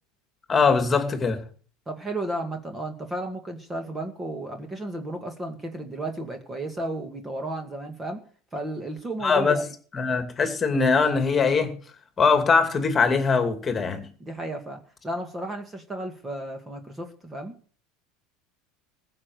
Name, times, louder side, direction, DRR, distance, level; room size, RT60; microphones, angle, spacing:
voice 1, 0.5-1.4 9.2-9.6 9.9-11.7 12.2-14.0, left 5 dB, 20° left, 2.4 m, -21 dB
voice 2, 1.9-8.2 8.5-9.7 14.2-17.5, right 1 dB, 15° right, 1.9 m, -33 dB
15.5 x 6.7 x 7.9 m
supercardioid pair, 145°, 0 cm